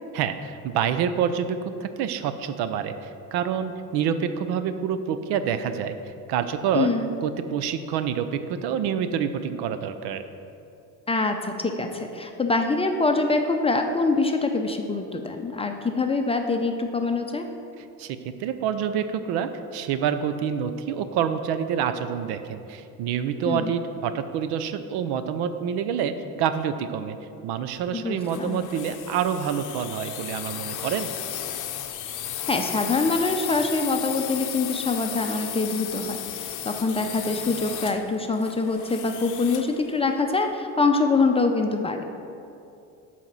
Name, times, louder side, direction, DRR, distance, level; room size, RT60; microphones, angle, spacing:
voice 1, 0.1-6.0 6.3-6.9 7.2-10.2 17.8-27.2 27.4-31.1, right 8 dB, 75° right, 10 dB, 0.6 m, -27 dB
voice 2, 6.7-7.1 11.1-17.5 23.5-23.7 27.9-28.6 32.5-42.0, left 3 dB, 15° left, 4 dB, 0.5 m, -24 dB
sound 1, 28.2-39.8, left 10 dB, 50° left, 0.7 m, -34 dB
8.9 x 4.2 x 6.0 m, 2.7 s
cardioid pair, 105°, 40 cm